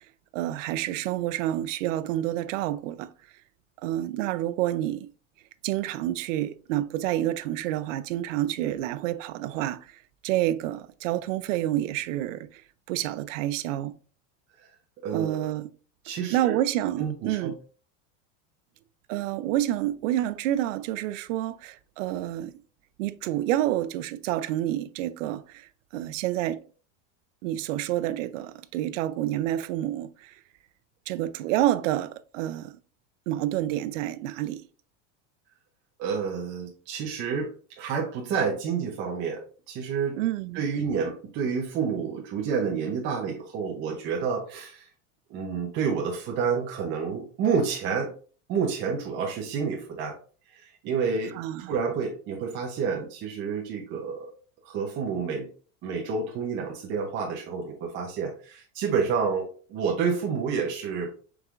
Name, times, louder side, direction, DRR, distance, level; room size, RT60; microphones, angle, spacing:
voice 1, 0.3-3.1 3.8-5.1 5.6-12.6 12.9-13.9 15.1-15.7 16.3-17.5 19.1-22.5 23.0-26.6 27.4-30.3 31.1-32.8 33.3-34.6 40.2-40.6 51.4-51.7, right 13 dB, 85° right, 0.5 m, -28 dB
voice 2, 15.0-15.5 16.0-16.6 17.0-17.5 36.0-40.2 40.5-44.9 45.3-48.1 48.5-50.2 50.5-51.4 51.7-54.3 54.6-55.5 55.8-61.1, right 6 dB, 30° right, 0.6 m, -29 dB
4.7 x 3.5 x 2.4 m
supercardioid pair, 160°, 37 cm